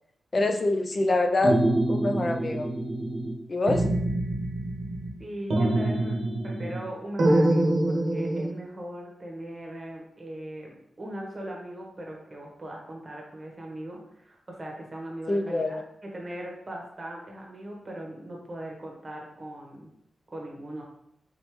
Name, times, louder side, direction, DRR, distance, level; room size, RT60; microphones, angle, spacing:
voice 1, 0.3-1.6 1.9-2.7 3.5-3.8 15.3-15.8, left 2 dB, 30° left, 5 dB, 0.4 m, -25 dB
sound 1, 1.4-3.4 3.7-5.1 5.5-6.9 7.2-8.5, right 1 dB, 60° right, 0.8 m, -25 dB
voice 2, 5.2-6.2 6.4-19.9 20.3-20.8, right 1 dB, 25° right, -1 dB, 1.0 m, -39 dB
3.9 x 3.5 x 3.0 m, 0.73 s
wide cardioid pair, 140°, 0 cm